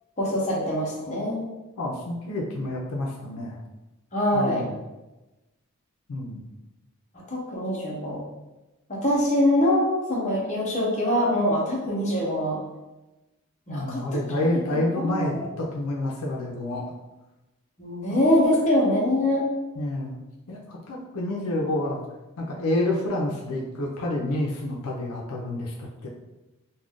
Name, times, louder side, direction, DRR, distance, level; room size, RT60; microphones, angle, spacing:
voice 1, 0.2-1.5 4.1-4.6 7.3-8.2 8.9-12.6 13.7-14.0 14.7-15.4 17.8-19.5, left 1 dB, 35° left, -5 dB, 0.7 m, -24 dB
voice 2, 1.8-3.6 4.3-4.8 6.1-6.5 13.7-16.9 18.1-18.2 19.8-20.2 20.5-22.0 22.4-26.1, left 1 dB, 80° left, -2 dB, 0.5 m, -28 dB
2.4 x 2.2 x 3.4 m, 1.0 s
head